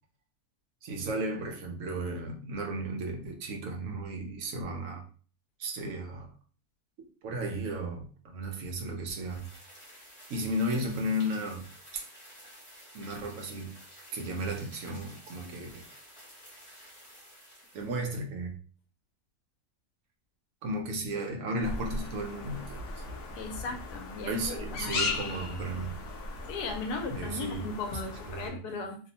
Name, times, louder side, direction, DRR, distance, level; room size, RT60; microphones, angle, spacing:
voice 1, 0.8-5.0 5.6-6.3 7.2-9.6 10.3-11.7 11.9-12.0 12.9-13.7 14.1-15.8 17.7-18.5 20.6-23.0 24.2-25.9 27.1-27.7 28.3-28.6, right 1 dB, 65° right, 2 dB, 1.0 m, -34 dB
sound 1, 9.2-18.2, equal, 35° left, 0.5 m, -52 dB
sound 2, 21.6-28.5, left 3 dB, 65° left, 0.8 m, -37 dB
voice 2, 23.3-24.9 26.5-29.0, left 4 dB, 90° left, 4 dB, 1.1 m, -37 dB
2.9 x 2.0 x 2.7 m, 0.40 s
omnidirectional pair, 1.6 m